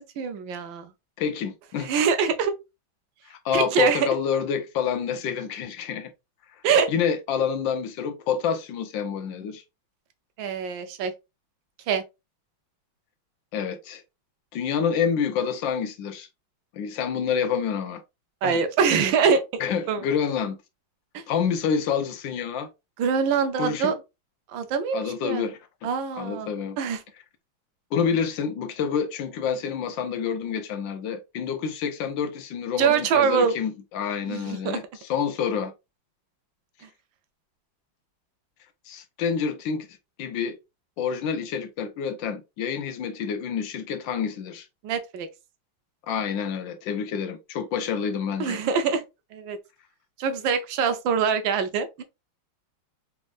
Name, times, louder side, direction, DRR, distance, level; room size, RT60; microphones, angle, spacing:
voice 1, 0.2-0.9 1.8-2.5 3.5-4.1 6.6-6.9 10.4-11.1 11.9-12.0 18.4-19.4 19.9-20.0 21.1-21.2 23.0-23.9 24.5-25.5 25.8-26.5 26.8-27.0 32.8-33.5 34.3-34.8 44.8-45.3 48.4-49.0 49.3-49.6 50.2-52.0, right 6 dB, 75° right, 1.3 m, -24 dB
voice 2, 1.2-1.9 3.3-6.1 6.9-9.6 13.5-14.0 14.5-16.3 16.7-18.0 18.4-18.6 19.6-20.6 21.3-22.7 23.5-24.0 24.9-25.6 26.2-26.8 27.9-35.7 38.9-39.9 40.2-40.6 41.0-44.7 46.1-48.6, left 7 dB, 75° left, 1.3 m, -28 dB
4.1 x 3.4 x 2.4 m
omnidirectional pair, 2.2 m